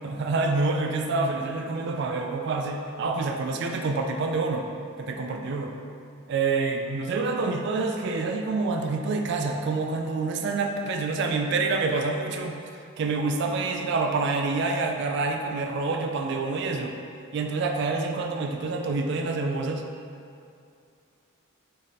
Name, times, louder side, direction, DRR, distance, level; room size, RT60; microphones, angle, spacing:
voice 1, 0.0-4.7 5.0-5.7 6.3-12.5 13.0-16.9 17.3-19.8, right 3 dB, 55° right, 4 dB, 0.3 m, -27 dB
3.6 x 3.4 x 4.1 m, 2.5 s
head